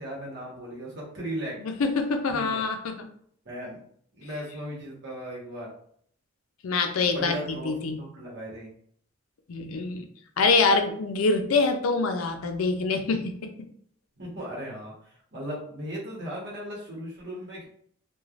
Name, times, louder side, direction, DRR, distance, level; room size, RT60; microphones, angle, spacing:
voice 1, 0.0-1.6 2.3-2.6 3.4-3.8 4.1-5.7 7.0-7.7 8.0-8.7 14.2-14.9 15.3-17.7, right 1 dB, 55° right, -4 dB, 1.1 m, -37 dB
voice 2, 1.6-3.1 6.6-8.0 9.5-10.0 10.4-13.4, left 4 dB, 90° left, 6 dB, 0.5 m, -25 dB
3.1 x 2.2 x 2.4 m, 0.63 s
head